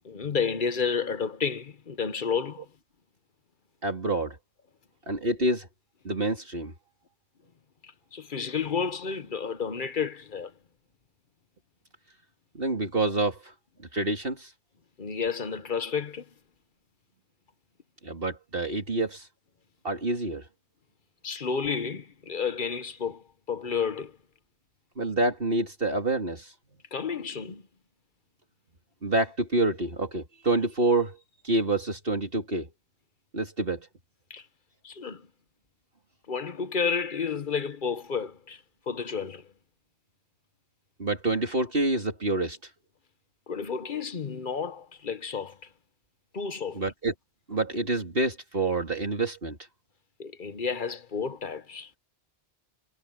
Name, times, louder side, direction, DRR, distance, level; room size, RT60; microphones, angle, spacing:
voice 1, 0.0-2.7 7.8-10.5 15.0-16.3 21.2-24.1 26.9-27.6 34.3-34.4 34.8-35.3 36.3-39.4 43.5-45.6 46.3-46.8 50.2-51.9, left 6 dB, 55° left, 1.1 m, -31 dB
voice 2, 3.8-4.4 5.1-5.7 6.0-6.7 12.5-13.4 13.9-14.5 18.0-19.3 19.8-20.4 25.0-26.5 29.0-31.2 31.4-32.7 33.3-33.9 41.0-42.6 46.7-47.1 47.5-49.6, right 2 dB, 60° right, 3.5 m, -27 dB
omnidirectional pair, 1.1 m